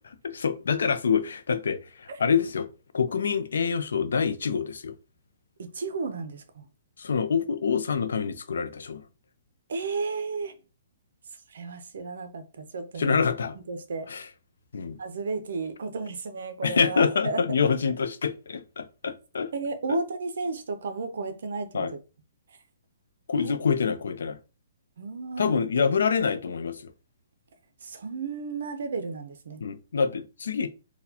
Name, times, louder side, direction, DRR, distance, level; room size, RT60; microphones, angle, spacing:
voice 1, 0.2-2.7 2.9-4.9 7.0-9.0 13.0-13.5 14.1-14.2 14.7-15.0 16.6-19.5 19.9-20.0 21.7-21.9 23.3-24.4 25.4-26.9 29.6-30.7, left 6 dB, 75° left, 0.5 m, -26 dB
voice 2, 5.6-6.7 9.7-10.6 11.5-13.2 13.7-14.1 15.0-17.7 19.5-21.9 22.5-22.6 23.3-23.5 25.0-25.6 27.8-29.6, right 4 dB, 60° right, 0.6 m, -33 dB
4.0 x 2.2 x 2.8 m
hypercardioid pair, 175°, 0 cm